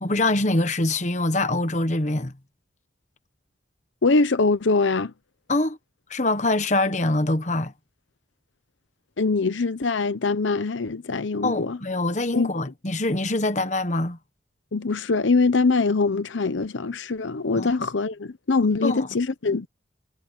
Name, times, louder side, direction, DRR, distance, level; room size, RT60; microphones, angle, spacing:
voice 1, 0.0-2.3 5.5-5.8 6.1-7.7 11.4-14.2 17.6-17.7 18.8-19.1, left 2 dB, 40° left, 1.2 m, -24 dB
voice 2, 4.0-5.1 9.2-11.8 12.3-12.5 14.7-19.7, left 3 dB, 80° left, 0.8 m, -23 dB
head